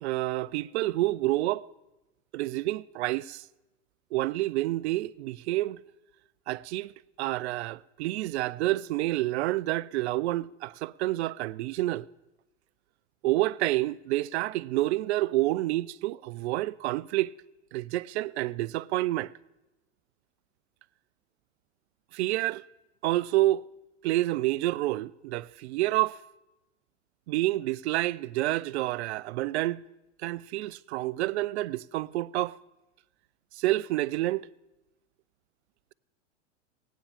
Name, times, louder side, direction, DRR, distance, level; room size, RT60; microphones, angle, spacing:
voice 1, 0.0-1.7 2.3-3.4 4.1-5.8 6.5-12.1 13.2-17.3 17.7-19.3 22.1-22.6 23.0-23.6 24.0-26.2 27.3-29.8 30.2-32.6 33.6-34.5, right 17 dB, 60° right, 0.5 m, -28 dB
18.5 x 9.3 x 4.9 m
hypercardioid pair, 105°, 38 cm